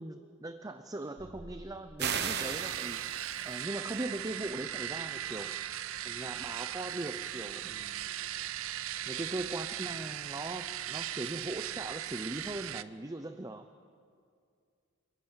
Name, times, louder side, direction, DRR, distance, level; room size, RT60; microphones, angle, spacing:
voice 1, 0.0-5.7 6.0-8.1 9.1-13.7, right 2 dB, 15° right, 8 dB, 0.6 m, -40 dB
sound 1, 1.2-3.6, equal, 80° left, 3.7 m, -54 dB
sound 2, 2.0-3.6, right 7 dB, 50° right, 1.0 m, -36 dB
sound 3, 2.0-12.8, right 11 dB, 65° right, 0.5 m, -38 dB
27.5 x 12.0 x 8.9 m, 2.2 s
head